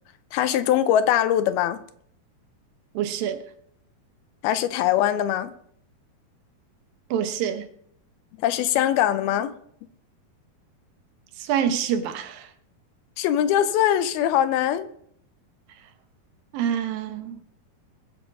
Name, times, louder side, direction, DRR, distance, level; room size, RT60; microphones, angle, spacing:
voice 1, 0.3-1.8 4.4-5.5 8.4-9.5 13.2-14.9, left 11 dB, 80° left, 2.6 m, -22 dB
voice 2, 2.9-3.4 7.1-7.7 11.4-12.5 16.5-17.4, right 9 dB, 70° right, 2.6 m, -26 dB
20.5 x 7.5 x 5.3 m
omnidirectional pair, 4.4 m